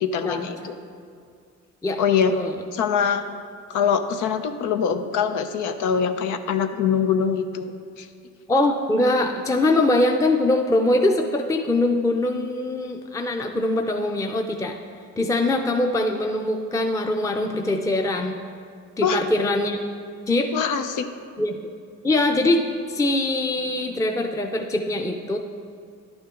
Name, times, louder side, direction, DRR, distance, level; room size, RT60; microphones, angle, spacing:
voice 1, 0.0-0.7 2.0-2.3 2.7-3.2 3.7-7.7 8.0-8.1 19.0-19.2 20.5-21.1, left 7 dB, 85° left, 8 dB, 0.7 m, -23 dB
voice 2, 8.5-14.8 15.2-18.4 19.0-19.8 20.3-20.5 21.4-21.6 22.0-25.4, left 2 dB, 10° left, 3 dB, 0.6 m, -22 dB
11.0 x 8.8 x 3.7 m, 2.3 s
cardioid pair, 90°, 30 cm